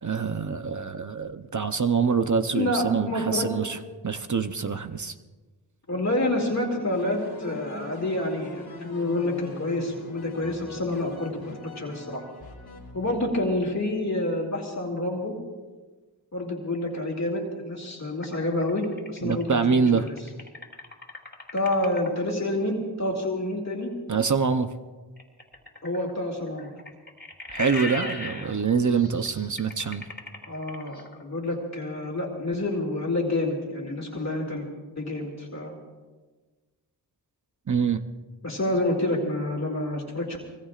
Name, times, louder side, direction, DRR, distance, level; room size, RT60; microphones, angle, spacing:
voice 1, 0.0-5.1 19.2-20.1 24.1-24.7 27.5-30.1 37.7-38.0, right 5 dB, 45° right, 8 dB, 0.8 m, -25 dB
voice 2, 2.5-3.5 5.9-12.2 12.9-15.3 16.3-20.1 21.5-23.9 25.8-26.7 30.5-34.7 35.0-35.7 38.4-40.4, left 1 dB, 40° left, -1 dB, 2.5 m, -28 dB
sound 1, 6.9-13.6, left 2 dB, 60° left, 2.3 m, -42 dB
sound 2, 18.2-22.3 25.2-31.2, left 2 dB, 25° left, 3.3 m, -38 dB
26.0 x 20.5 x 2.5 m, 1.3 s
wide cardioid pair, 80°, 41 cm